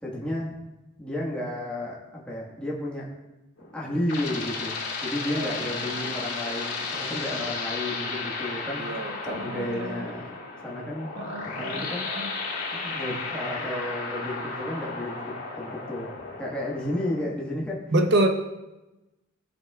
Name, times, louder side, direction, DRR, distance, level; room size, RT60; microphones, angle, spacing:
voice 1, 0.0-0.5 1.0-3.1 3.7-8.9 9.3-10.3 10.6-12.1 12.7-16.1 16.4-17.8, left 1 dB, 5° left, -5 dB, 1.6 m, -32 dB
sound 1, 3.6-17.2, left 3 dB, 85° left, 3.3 m, -34 dB
voice 2, 5.4-5.9 8.8-10.1 11.2-11.9 12.1-12.3 17.9-18.3, right 1 dB, 55° right, 5 dB, 0.8 m, -27 dB
17.5 x 6.2 x 2.4 m, 1.0 s
head